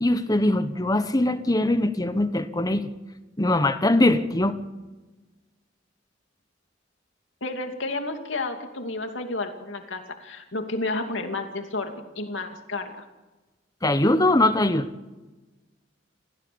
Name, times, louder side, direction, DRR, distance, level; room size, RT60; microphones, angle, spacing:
voice 1, 0.0-2.9 3.4-4.6 13.8-14.9, left 1 dB, 20° left, 11 dB, 1.1 m, -21 dB
voice 2, 7.4-13.0, left 2 dB, 80° left, 5 dB, 2.7 m, -31 dB
28.5 x 15.5 x 7.0 m, 1.2 s
head